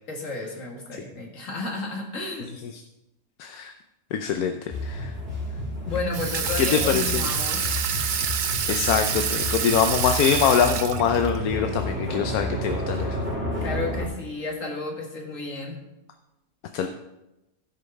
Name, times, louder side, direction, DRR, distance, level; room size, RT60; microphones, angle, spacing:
voice 1, 0.1-2.5 5.9-7.7 13.6-15.8, left 2 dB, 60° left, 0 dB, 2.2 m, -32 dB
voice 2, 3.4-3.7 4.1-5.1 6.6-7.3 8.7-13.2 16.7-16.9, left 7 dB, 80° left, 6 dB, 1.2 m, -24 dB
sound 1, 4.7-14.1, left 1 dB, 5° right, 3.1 m, -31 dB
Water tap faucet / Sink (filling or washing), 6.1-11.4, right 8 dB, 70° right, 0.4 m, -27 dB
15.5 x 5.2 x 5.3 m, 0.96 s
omnidirectional pair, 1.5 m